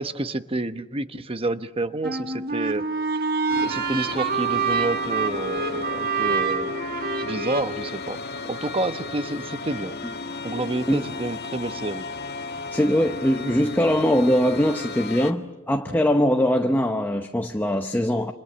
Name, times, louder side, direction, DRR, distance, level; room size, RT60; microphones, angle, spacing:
voice 1, 0.0-2.8 3.6-6.7 7.2-8.2 8.5-9.9 10.4-12.0, right 2 dB, 25° right, 1.0 m, -29 dB
sound 1, 2.0-7.6, right 4 dB, 45° right, 1.4 m, -26 dB
sound 2, 3.5-15.3, left 3 dB, 50° left, 1.9 m, -34 dB
voice 2, 12.7-18.3, equal, 10° left, 0.9 m, -22 dB
29.5 x 26.5 x 6.9 m
head